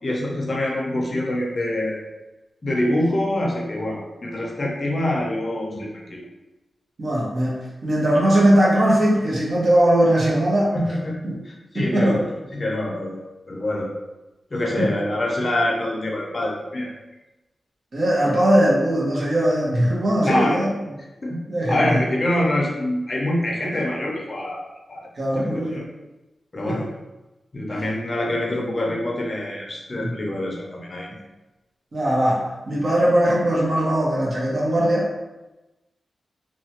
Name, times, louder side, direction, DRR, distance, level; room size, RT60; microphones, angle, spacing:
voice 1, 0.0-2.0 2.6-6.2 10.7-11.2 11.5-12.2 12.5-13.9 14.5-16.9 20.2-20.6 21.2-21.4 21.7-25.0 25.4-25.8 26.5-26.9 27.5-31.1, left 1 dB, 35° left, -2 dB, 0.5 m, -25 dB
voice 2, 7.0-10.7 11.2-11.4 11.7-12.2 14.8-14.9 17.9-20.7 21.5-22.0 25.2-25.8 26.6-26.8 27.7-27.8 30.0-30.2 31.9-35.1, right 1 dB, 60° right, -5 dB, 0.9 m, -20 dB
2.8 x 2.2 x 2.8 m, 1.0 s
wide cardioid pair, 125°, 0 cm